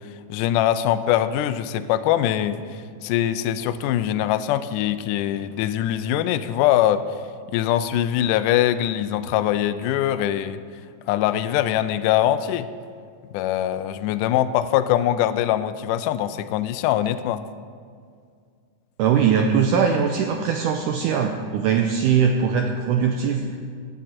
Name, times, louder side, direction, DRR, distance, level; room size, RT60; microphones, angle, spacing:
voice 1, 0.3-7.1 7.5-10.6 11.1-12.7 13.3-17.4, left 12 dB, 85° left, 11 dB, 1.8 m, -22 dB
voice 2, 19.0-23.6, right 7 dB, 80° right, 4 dB, 1.9 m, -21 dB
16.0 x 9.5 x 4.4 m, 2.2 s
omnidirectional pair, 4.2 m